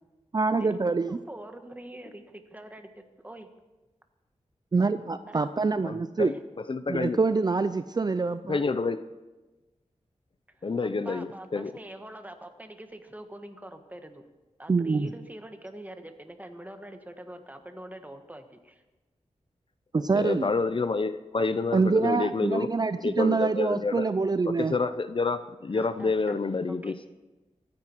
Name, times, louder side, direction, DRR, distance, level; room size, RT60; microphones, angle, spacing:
voice 1, 0.3-1.2 4.7-6.3 6.9-8.6 14.7-15.1 19.9-20.5 21.7-24.8, right 4 dB, 35° right, 11 dB, 0.5 m, -25 dB
voice 2, 1.1-3.5 5.3-5.5 6.2-6.4 10.5-14.2 14.6-18.8 25.7-26.4 26.7-26.9, right 1 dB, 15° right, 6 dB, 1.4 m, -44 dB
voice 3, 5.8-6.3 6.7-7.2 8.5-9.0 10.6-11.7 20.1-22.7 23.0-24.1 24.4-26.9, left 4 dB, 45° left, 12 dB, 0.6 m, -28 dB
24.0 x 9.6 x 4.6 m, 1.1 s
wide cardioid pair, 110°, 12 cm